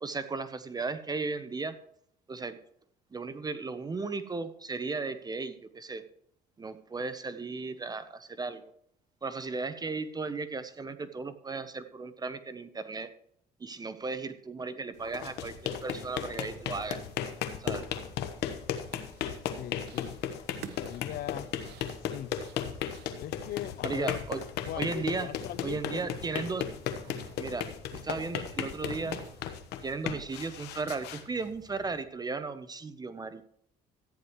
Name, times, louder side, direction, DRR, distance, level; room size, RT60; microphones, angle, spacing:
voice 1, 0.0-1.8 2.3-2.6 3.1-6.0 6.6-8.6 9.2-13.1 13.6-17.0 17.6-17.8 23.8-24.4 24.8-25.3 25.6-26.6 27.4-29.2 29.8-33.4, right 4 dB, 25° right, 0.8 m, -35 dB
sound 1, 15.0-32.0, left 9 dB, 85° left, 1.2 m, -36 dB
sound 2, 18.9-19.4 19.8-20.2 20.5-24.7 25.0-26.0 26.3-27.4 27.9-29.5, right 9 dB, 75° right, 1.1 m, -51 dB
voice 2, 19.6-20.2 20.8-21.5 22.0-22.3 23.2-24.3 24.6-26.1, left 12 dB, 65° left, 0.5 m, -40 dB
14.0 x 9.5 x 3.1 m
cardioid pair, 110°, 17 cm